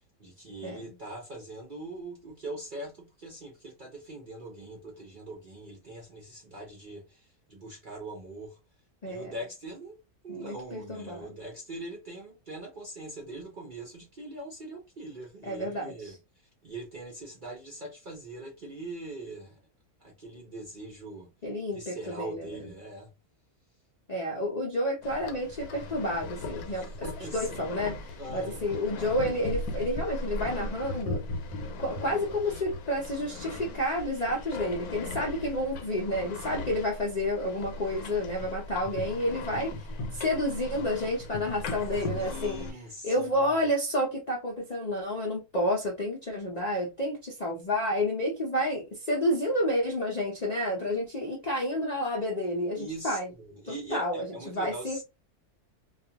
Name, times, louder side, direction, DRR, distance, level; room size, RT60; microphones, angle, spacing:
voice 1, 0.2-8.6 9.0-10.0 10.2-16.1 16.6-19.6 20.0-21.3 21.7-23.1 26.6-27.7 28.2-28.6 42.1-43.3 52.8-55.0, right 2 dB, 50° right, 0.6 m, -42 dB
voice 2, 9.0-9.3 10.3-11.3 15.5-15.9 21.4-22.7 24.1-26.9 27.3-31.2 31.8-39.7 40.1-42.6 43.0-53.3 53.7-55.0, left 1 dB, 50° left, 0.4 m, -30 dB
sound 1, 25.0-42.7, left 2 dB, 80° left, 1.1 m, -38 dB
2.4 x 2.3 x 2.7 m
omnidirectional pair, 1.6 m